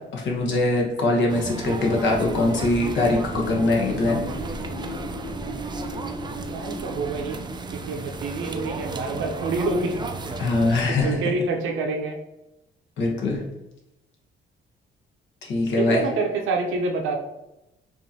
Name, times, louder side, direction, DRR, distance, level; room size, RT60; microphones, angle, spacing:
voice 1, 0.1-4.3 10.4-11.2 13.0-13.4 15.4-16.0, left 2 dB, 70° left, -1 dB, 1.1 m, -22 dB
sound 1, 1.3-10.8, right 3 dB, 20° right, 0.4 m, -34 dB
sound 2, 2.1-8.0, equal, 90° left, 1.1 m, -38 dB
voice 2, 6.5-7.4 7.7-10.0 10.9-12.2 15.7-17.2, right 3 dB, 80° right, 1 dB, 0.7 m, -27 dB
4.6 x 2.7 x 2.8 m, 0.93 s
cardioid pair, 90°, 20 cm